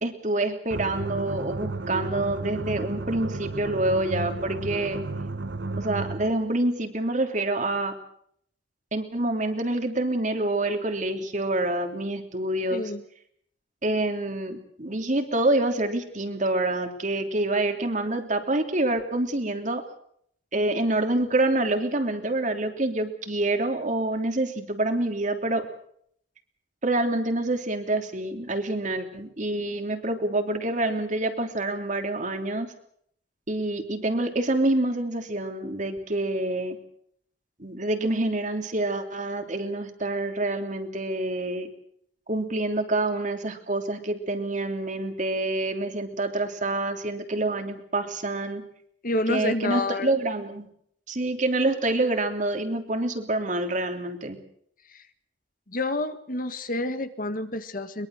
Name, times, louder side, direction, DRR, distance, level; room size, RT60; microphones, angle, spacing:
voice 1, 0.0-5.0 5.8-7.9 8.9-12.9 13.8-19.8 20.5-25.7 26.8-32.7 33.5-36.8 37.6-41.7 42.3-48.6 49.3-50.7 51.1-54.4, right 2 dB, 45° right, 5 dB, 3.2 m, -27 dB
sound 1, 0.7-6.4, right 2 dB, 80° right, 1.1 m, -33 dB
voice 2, 12.7-13.0 49.0-50.1 54.9-55.0 55.7-58.1, left 2 dB, 50° left, 10 dB, 1.8 m, -29 dB
22.5 x 22.5 x 6.5 m, 0.67 s
head